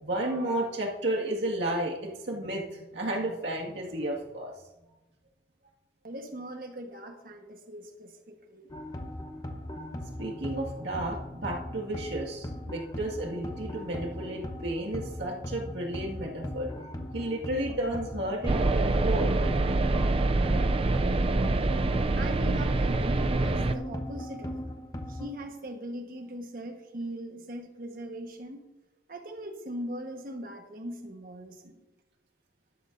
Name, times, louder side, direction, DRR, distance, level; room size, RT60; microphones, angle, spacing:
voice 1, 0.0-4.5 10.2-16.7 17.1-19.4, right 1 dB, 75° right, -1 dB, 2.0 m, -32 dB
voice 2, 6.0-8.7 22.1-24.7 25.1-28.6 29.1-31.8, right 1 dB, 50° right, 4 dB, 1.3 m, -40 dB
sound 1, 8.7-25.3, left 1 dB, 20° left, 1.0 m, -38 dB
sound 2, 18.5-23.8, right 2 dB, 30° right, 0.4 m, -25 dB
12.5 x 12.0 x 2.6 m, 1.0 s
head